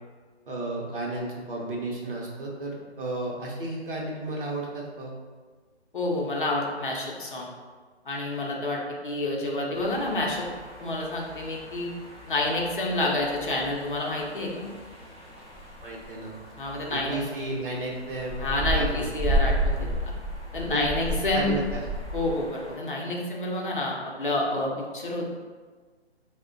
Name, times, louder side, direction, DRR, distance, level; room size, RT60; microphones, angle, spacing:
voice 1, 0.5-5.1 15.8-16.4 16.9-19.1 20.7-21.8, right 2 dB, 50° right, -3 dB, 0.8 m, -33 dB
voice 2, 5.9-7.5 8.0-10.5 10.8-11.9 12.3-14.7 16.6-17.2 18.4-20.1 20.5-21.6 22.1-25.3, left 2 dB, 50° left, -2 dB, 0.6 m, -29 dB
sound 1, 9.7-22.7, equal, 10° right, 0.6 m, -33 dB
3.3 x 2.1 x 3.7 m, 1.5 s
hypercardioid pair, 170°, 34 cm